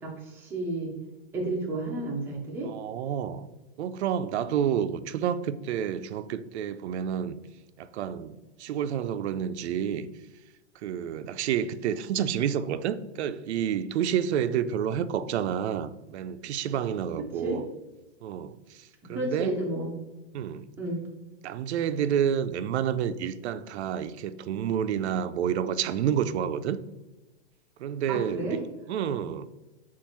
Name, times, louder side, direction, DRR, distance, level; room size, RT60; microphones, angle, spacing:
voice 1, 0.0-0.9 1.3-2.7 17.4-17.6 19.0-20.0 20.8-21.0 28.1-28.6, right 1 dB, 5° right, 0.5 m, -31 dB
voice 2, 2.6-3.5 3.8-7.4 7.8-10.1 10.8-17.7 18.2-19.6 20.3-20.7 21.4-26.8 27.8-29.5, right 9 dB, 80° right, 0.5 m, -29 dB
7.0 x 2.5 x 3.0 m
hypercardioid pair, 155°, 33 cm